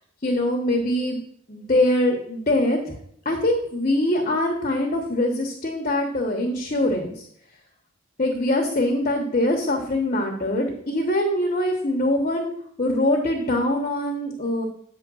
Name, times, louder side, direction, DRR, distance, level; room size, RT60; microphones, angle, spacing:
voice 1, 0.2-1.2 1.5-3.0 3.2-7.2 8.2-12.5 12.8-14.7, left 1 dB, 40° left, 1 dB, 1.0 m, -23 dB
8.8 x 3.3 x 6.1 m, 0.66 s
head